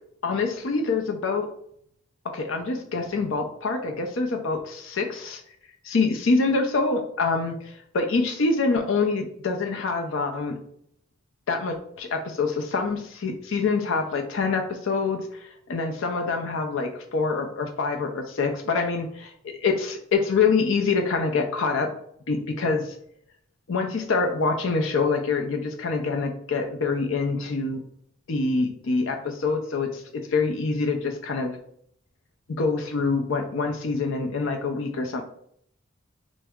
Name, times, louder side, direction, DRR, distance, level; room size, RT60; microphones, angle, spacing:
voice 1, 0.2-1.5 2.2-5.4 5.8-10.6 11.5-21.9 22.3-23.0 23.7-27.8 28.3-31.6 32.5-35.2, left 4 dB, 70° left, 4 dB, 0.5 m, -25 dB
3.3 x 2.0 x 3.5 m, 0.68 s
head